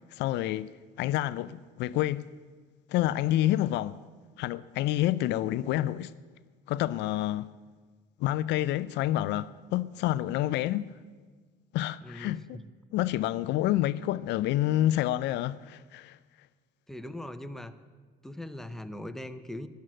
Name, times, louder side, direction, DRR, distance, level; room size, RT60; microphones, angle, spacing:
voice 1, 0.1-0.7 1.0-2.3 2.9-4.0 4.4-6.1 6.7-7.5 8.2-10.9 11.7-12.6 12.9-16.2, left 14 dB, 65° left, 0.4 m, -28 dB
voice 2, 12.0-12.6 16.9-17.7 18.2-19.7, left 1 dB, ahead, 0.7 m, -40 dB
12.5 x 10.5 x 7.7 m
cardioid pair, 105°, 19 cm